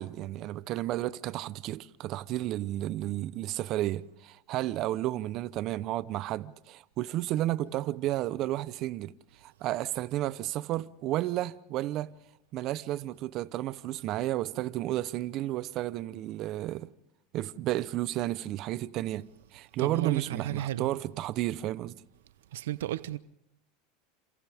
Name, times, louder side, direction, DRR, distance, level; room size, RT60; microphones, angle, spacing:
voice 1, 0.0-9.1 9.4-12.1 12.5-16.9 17.3-19.2 19.5-22.0, right 14 dB, 45° right, 0.8 m, -32 dB
voice 2, 19.8-20.9 22.5-23.2, right 14 dB, 85° right, 0.7 m, -32 dB
28.5 x 28.0 x 3.6 m
supercardioid pair, 130°, 0 cm